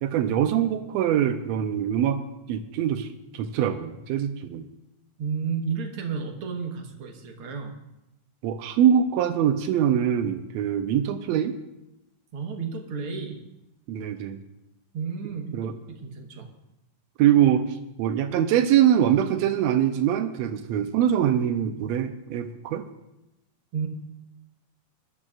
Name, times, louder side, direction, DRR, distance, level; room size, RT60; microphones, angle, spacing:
voice 1, 0.0-2.2 2.5-3.1 3.3-4.7 8.4-11.5 13.9-14.4 15.5-15.8 17.2-22.9, right 10 dB, 85° right, 8 dB, 1.5 m, -23 dB
voice 2, 5.2-7.8 12.3-13.4 14.9-16.5 23.7-23.9, right 5 dB, 55° right, 2 dB, 1.8 m, -32 dB
21.5 x 12.5 x 2.5 m, 0.91 s
omnidirectional pair, 3.8 m